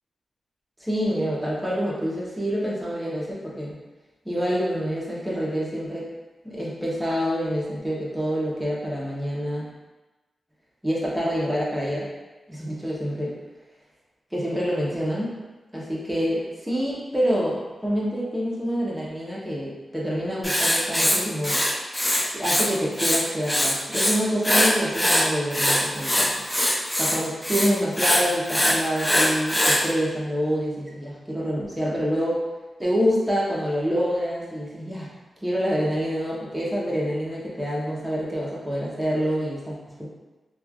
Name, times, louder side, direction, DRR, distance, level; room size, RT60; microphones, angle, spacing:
voice 1, 0.8-3.7 4.2-6.1 6.4-9.7 10.8-12.1 12.5-13.3 14.3-15.4 15.7-21.6 22.3-26.3 27.0-32.4 32.8-35.1 35.4-40.1, equal, 10° right, -5 dB, 0.8 m, -27 dB
Writing, 20.4-22.7 22.9-24.1 24.4-29.8, equal, 10° left, 0.5 m, -22 dB
3.0 x 2.4 x 2.3 m, 1.2 s
cardioid pair, 70°, 0 cm